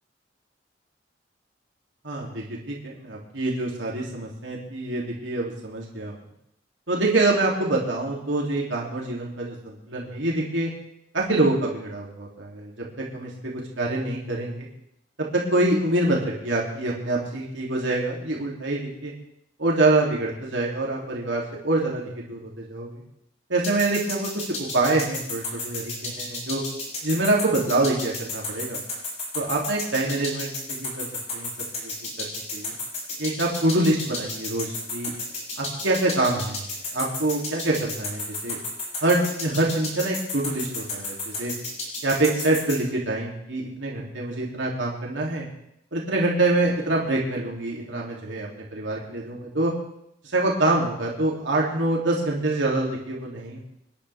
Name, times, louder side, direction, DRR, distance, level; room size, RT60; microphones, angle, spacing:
voice 1, 2.0-6.1 6.9-10.7 11.1-12.7 13.0-14.7 15.3-19.1 19.6-23.0 23.5-26.6 27.0-28.8 29.3-31.1 31.3-31.5 31.8-31.9 32.2-32.7 33.2-35.1 35.6-36.6 36.9-38.6 39.0-41.5 42.0-45.4 45.9-49.7 50.3-53.6, right 2 dB, 85° right, -3 dB, 3.0 m, -25 dB
sound 1, 23.6-42.8, left 2 dB, 35° left, 6.2 m, -32 dB
27.5 x 10.5 x 3.6 m, 0.78 s
head